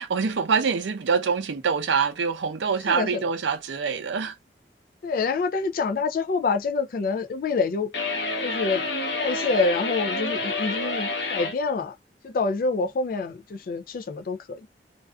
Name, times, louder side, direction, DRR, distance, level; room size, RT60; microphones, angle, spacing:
voice 1, 0.0-4.3, right 5 dB, 85° right, 0.5 m, -25 dB
voice 2, 2.9-3.3 5.0-7.9 8.4-8.9 9.2-11.9 12.2-14.7, left 4 dB, 50° left, 0.3 m, -27 dB
sound 1, 7.9-11.6, left 2 dB, 65° left, 0.8 m, -28 dB
2.5 x 2.3 x 2.3 m
head